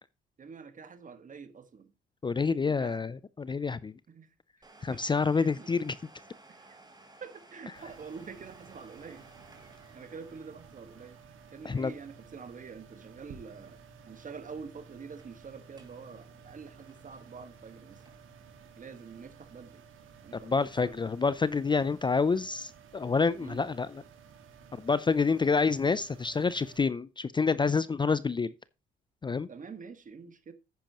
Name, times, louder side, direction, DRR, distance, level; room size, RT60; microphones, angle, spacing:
voice 1, 0.4-1.9 2.6-3.0 4.1-4.3 4.9-5.0 5.3-5.7 6.5-6.8 7.2-9.3 9.9-11.2 11.5-13.8 14.1-18.0 18.8-19.8 20.2-20.9 23.4-23.6 29.5-30.5, right 5 dB, 40° right, 1.7 m, -46 dB
voice 2, 2.2-3.9 4.8-6.0 11.6-11.9 20.3-23.9 24.7-28.5 29.2-29.5, left 4 dB, 25° left, 0.5 m, -28 dB
Domestic sounds home sounds, 4.6-14.1 14.3-14.4 15.0-15.3 15.7-16.0 16.4-18.4 18.9-19.0 19.7-19.8, right 2 dB, 20° right, 2.5 m, -58 dB
sound 1, 7.8-26.8, right 6 dB, 80° right, 2.0 m, -54 dB
10.5 x 8.8 x 3.0 m
cardioid pair, 90°, 20 cm